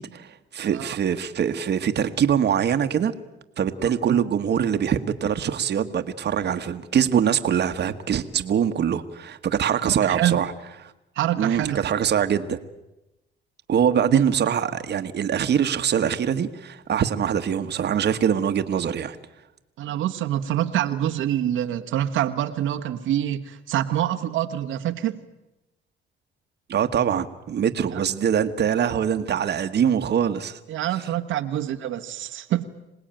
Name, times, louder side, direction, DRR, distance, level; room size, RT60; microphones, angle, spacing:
voice 1, 0.0-3.1 3.6-10.5 10.8-10.9 11.4-12.6 13.7-19.2 26.7-30.6, right 8 dB, 60° right, 8 dB, 1.4 m, -23 dB
voice 2, 3.8-4.2 9.8-10.4 11.1-11.8 14.1-14.3 19.8-25.2 27.9-28.0 30.7-32.6, right 12 dB, 85° right, 4 dB, 1.4 m, -26 dB
26.5 x 19.0 x 9.0 m, 0.97 s
cardioid pair, 90°, 20 cm